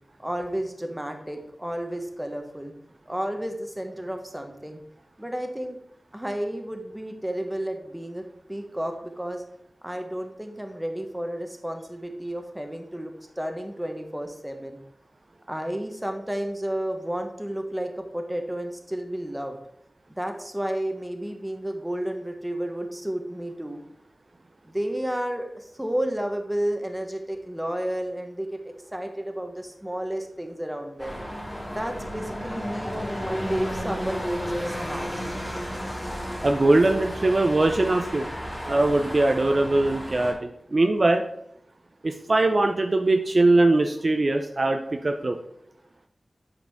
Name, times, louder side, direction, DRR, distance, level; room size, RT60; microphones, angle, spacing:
voice 1, 0.2-2.7 3.1-4.8 5.2-5.8 6.1-8.2 8.5-9.4 9.8-14.8 15.5-19.6 20.1-23.8 24.6-31.2 31.7-35.4, right 1 dB, 10° right, 4 dB, 1.2 m, -32 dB
sound 1, 31.0-40.3, equal, 20° left, 2.7 m, -33 dB
voice 2, 36.4-38.3 38.7-41.2 42.0-45.4, right 2 dB, 55° right, 5 dB, 0.5 m, -21 dB
7.7 x 4.9 x 3.6 m, 0.74 s
cardioid pair, 40°, 0 cm